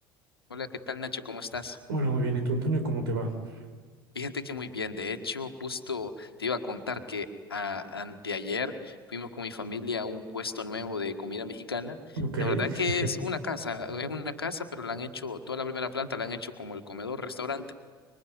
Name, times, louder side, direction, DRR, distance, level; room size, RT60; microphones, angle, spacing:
voice 1, 0.5-1.8 4.1-17.7, left 4 dB, 85° left, 7 dB, 1.7 m, -34 dB
voice 2, 1.9-3.6 12.2-13.0, right 2 dB, 70° right, 7 dB, 4.2 m, -29 dB
26.0 x 23.5 x 9.6 m, 1.5 s
figure-of-eight pair, 65°, 12 cm